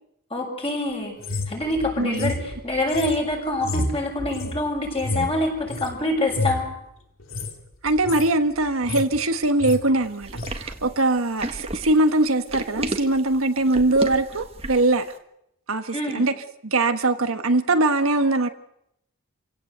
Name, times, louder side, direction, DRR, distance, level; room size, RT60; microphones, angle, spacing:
voice 1, 0.3-1.2 1.5-6.7 15.9-16.2, left 1 dB, 25° left, 7.0 m, -26 dB
sound 1, 1.2-6.0 6.3-6.7 7.2-7.5 7.9-8.3 8.6-9.2 9.4-9.8 10.3-10.6, left 2 dB, 65° left, 2.8 m, -30 dB
voice 2, 2.0-2.3 7.8-15.1 15.7-16.3 16.6-18.5, right 2 dB, 75° right, 1.4 m, -22 dB
sound 2, 10.2-15.0, right 2 dB, 30° right, 1.8 m, -32 dB
27.5 x 17.0 x 8.1 m
head